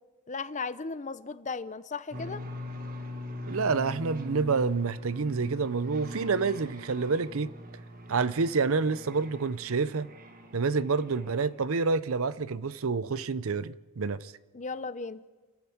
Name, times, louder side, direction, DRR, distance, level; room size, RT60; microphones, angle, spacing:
voice 1, 0.3-2.4 14.5-15.2, left 4 dB, 35° left, 0.7 m, -36 dB
sound 1, 2.1-11.7, left 1 dB, 40° right, 1.5 m, -42 dB
voice 2, 3.5-7.5 8.1-10.1 10.5-14.3, right 4 dB, 65° right, 0.6 m, -28 dB
29.0 x 14.0 x 7.2 m
head